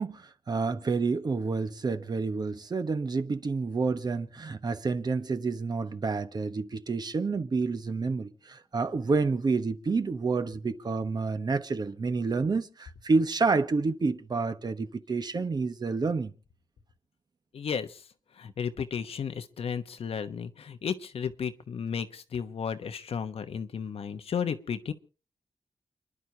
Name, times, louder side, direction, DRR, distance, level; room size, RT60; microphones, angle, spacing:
voice 1, 0.0-16.3, right 4 dB, 45° right, 1.2 m, -29 dB
voice 2, 17.5-18.0 18.4-24.9, left 7 dB, 85° left, 1.1 m, -33 dB
29.5 x 11.0 x 2.9 m
wide cardioid pair, 125°, 10 cm